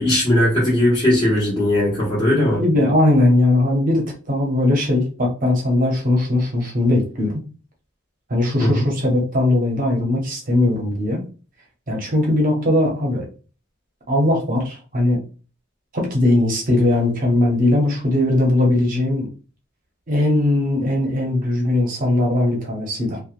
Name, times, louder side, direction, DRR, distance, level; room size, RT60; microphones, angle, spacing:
voice 1, 0.0-2.6 8.6-8.8, left 1 dB, 30° left, -11 dB, 1.3 m, -18 dB
voice 2, 2.2-7.4 8.3-11.2 11.9-13.3 14.1-15.2 15.9-19.3 20.1-23.2, left 1 dB, 40° right, -1 dB, 0.7 m, -19 dB
2.9 x 2.2 x 2.4 m, 0.36 s
head